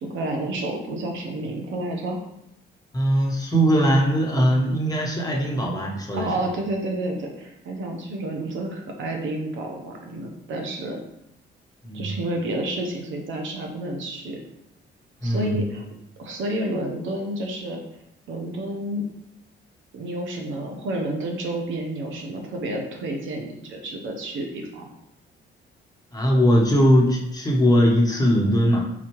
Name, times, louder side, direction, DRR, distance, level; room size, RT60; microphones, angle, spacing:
voice 1, 0.0-2.2 6.2-11.0 11.9-14.4 15.2-15.8 16.2-17.8 18.3-19.1 19.9-24.8, right 1 dB, 75° right, 1 dB, 0.9 m, -30 dB
voice 2, 2.9-6.3 11.8-12.2 15.2-15.6 26.1-28.8, equal, 20° left, -2 dB, 1.1 m, -20 dB
4.2 x 4.0 x 3.0 m, 0.81 s
cardioid pair, 90°, 20 cm